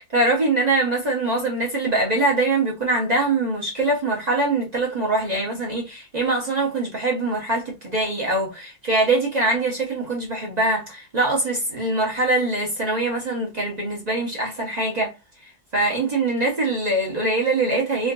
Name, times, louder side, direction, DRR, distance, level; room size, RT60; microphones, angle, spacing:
voice 1, 0.1-15.2 15.4-18.1, right 2 dB, 40° right, 0.6 m, -23 dB
3.8 x 2.5 x 2.2 m
omnidirectional pair, 2.1 m